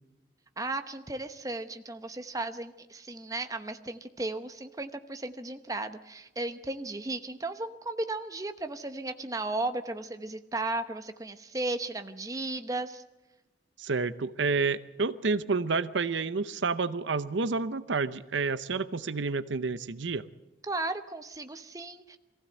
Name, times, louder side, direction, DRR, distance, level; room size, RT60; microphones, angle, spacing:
voice 1, 0.6-13.0 20.7-22.2, right 2 dB, 20° right, 8 dB, 0.9 m, -35 dB
voice 2, 13.8-20.2, right 4 dB, 70° right, 14 dB, 0.7 m, -29 dB
22.5 x 15.5 x 7.8 m, 1.1 s
head